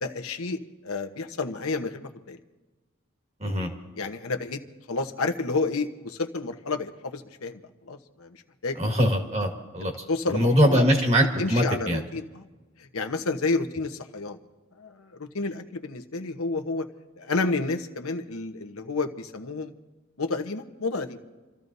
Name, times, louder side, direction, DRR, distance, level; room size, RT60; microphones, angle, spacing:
voice 1, 0.0-2.4 4.0-4.6 4.9-7.6 7.9-8.4 8.6-8.8 10.1-10.8 11.4-12.5 12.8-14.4 14.8-16.9 17.2-19.7 20.2-21.2, left 3 dB, 80° left, 7 dB, 1.0 m, -30 dB
voice 2, 3.4-3.7 8.8-12.0, equal, 30° right, 2 dB, 1.7 m, -23 dB
29.5 x 14.0 x 2.7 m, 1.3 s
head